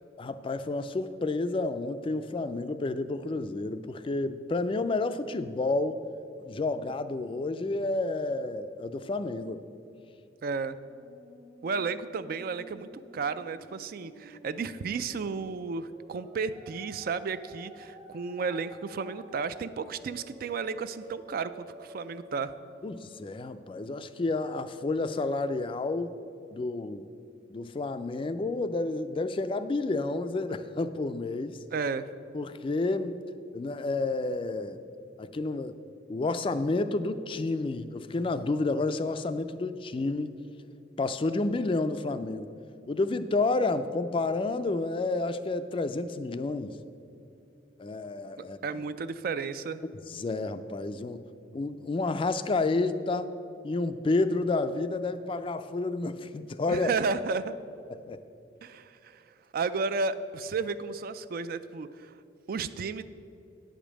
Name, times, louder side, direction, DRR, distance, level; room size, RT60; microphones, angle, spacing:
voice 1, 0.2-6.0 6.4-9.6 22.8-26.1 26.5-27.1 27.5-31.6 32.3-33.2 33.5-34.8 35.2-35.7 36.1-40.4 41.0-42.5 42.9-46.8 47.8-48.6 50.1-51.3 51.5-53.3 53.6-56.9 58.1-58.2, left 3 dB, 30° left, 11 dB, 0.3 m, -30 dB
voice 2, 10.4-10.8 11.6-12.9 13.1-22.5 31.7-32.1 48.6-49.8 56.7-57.6 58.6-59.2 59.5-62.1 62.5-63.0, right 4 dB, 50° right, 13 dB, 0.3 m, -33 dB
Musical instrument, 10.6-24.0, right 1 dB, 30° right, 0.9 m, -52 dB
9.2 x 5.1 x 7.3 m, 2.6 s
head